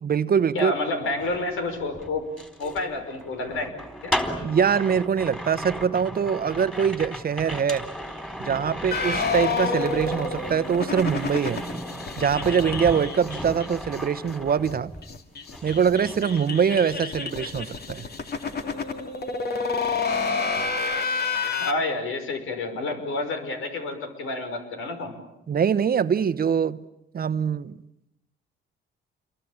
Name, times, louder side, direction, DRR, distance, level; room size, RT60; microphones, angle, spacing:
voice 1, 0.0-0.7 4.4-7.9 8.4-11.6 12.2-14.9 15.6-18.1 25.5-26.8 27.1-27.8, right 7 dB, 45° right, 1.0 m, -23 dB
voice 2, 0.5-2.3 2.6-3.7 4.0-4.1 21.6-25.1, left 2 dB, 85° left, 5.7 m, -29 dB
sound 1, 1.1-15.2 15.5-17.0 17.3-17.6, equal, 5° left, 3.9 m, -36 dB
sound 2, 8.9-14.0 14.3-14.4 14.6-14.7 15.0-21.7, left 4 dB, 50° left, 2.7 m, -29 dB
28.5 x 23.0 x 8.8 m
cardioid pair, 90°, 21 cm